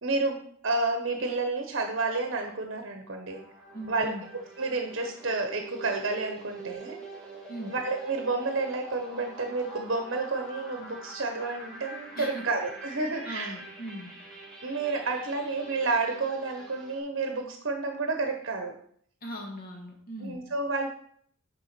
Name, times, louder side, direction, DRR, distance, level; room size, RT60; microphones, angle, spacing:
voice 1, 0.0-3.4 3.9-4.1 4.6-7.0 7.7-13.6 14.6-18.7 20.2-20.9, right 3 dB, 55° right, 5 dB, 0.9 m, -30 dB
sound 1, 3.3-17.0, right 2 dB, 5° left, 2.3 m, -45 dB
voice 2, 3.7-4.2 7.5-7.7 12.2-12.4 13.2-14.1 19.2-20.4, equal, 45° left, 1 dB, 1.8 m, -39 dB
6.7 x 4.7 x 6.0 m, 0.62 s
head